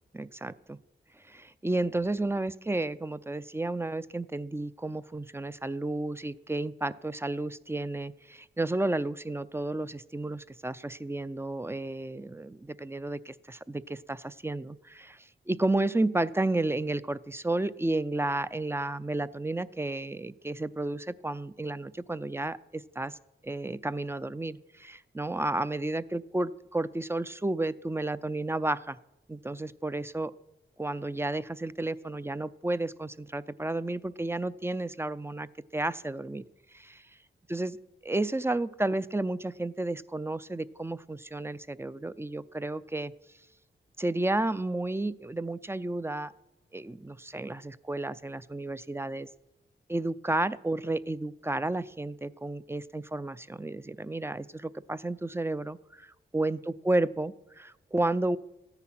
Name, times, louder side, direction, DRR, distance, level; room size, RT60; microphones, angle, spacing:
voice 1, 0.1-0.8 1.3-23.2 23.4-29.0 29.3-30.3 30.8-36.4 36.7-37.0 37.5-37.8 38.0-43.1 44.0-46.3 46.7-49.3 49.9-58.4, right 2 dB, 10° right, 16 dB, 0.5 m, -32 dB
14.0 x 9.9 x 5.9 m, 0.95 s
cardioid pair, 55°, 21 cm